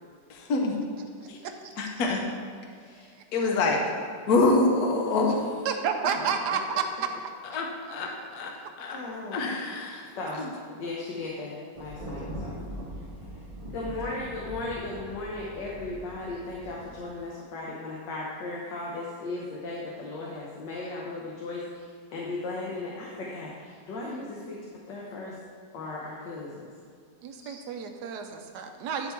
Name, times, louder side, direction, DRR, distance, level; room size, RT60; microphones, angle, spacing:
voice 1, 0.3-0.8 1.3-1.4 1.8-2.2 3.3-3.8 4.3-5.4 7.5-8.5 8.8-9.0 9.3-10.1 10.4-10.5, left 3 dB, 65° left, 1 dB, 1.3 m, -25 dB
voice 2, 5.6-7.1 8.6-8.7 27.2-29.1, right 6 dB, 75° right, 5 dB, 1.2 m, -30 dB
voice 3, 8.9-9.6 10.2-10.5 10.7-12.6 13.7-24.6 24.9-25.3 25.7-26.7 27.4-27.5, left 2 dB, 85° left, -4 dB, 1.7 m, -36 dB
Thunder, 11.8-17.1, equal, 35° right, 1.4 m, -41 dB
11.0 x 3.9 x 4.5 m, 2.2 s
omnidirectional pair, 1.9 m